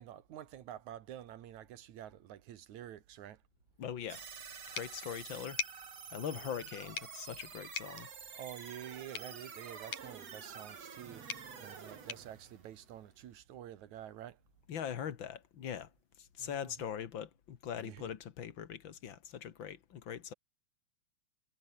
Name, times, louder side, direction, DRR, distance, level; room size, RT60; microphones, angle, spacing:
voice 1, 0.0-3.4 6.3-6.7 8.0-14.4 16.4-16.7 17.7-18.1, right 11 dB, 75° right, 2.7 m, -49 dB
voice 2, 3.8-4.2 4.8-5.6 6.1-8.1 14.7-15.9 16.4-20.3, left 8 dB, 50° left, 1.7 m, -41 dB
sound 1, 4.1-13.3, right 6 dB, 60° right, 4.2 m, -49 dB
sound 2, 4.7-13.4, left 7 dB, 85° left, 4.5 m, -47 dB
omnidirectional pair, 3.4 m